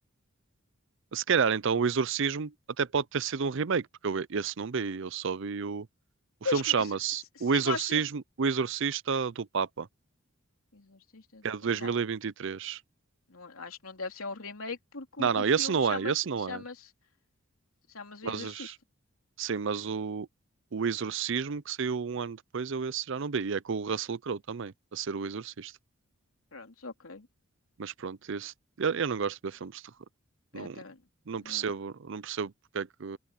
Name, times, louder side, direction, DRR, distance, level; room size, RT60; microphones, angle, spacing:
voice 1, 1.1-5.9 6.4-9.9 11.4-12.8 15.2-16.6 18.2-18.8 19.4-20.3 20.7-25.7 27.8-29.8 30.5-30.8 31.3-33.2, right 6 dB, 60° right, 0.5 m, -30 dB
voice 2, 6.4-6.9 7.5-8.0 10.7-11.5 11.8-11.9 13.3-16.1 16.5-16.9 17.9-18.7 26.5-27.3 30.5-31.0 31.4-31.7, left 4 dB, 90° left, 3.2 m, -39 dB
open air
head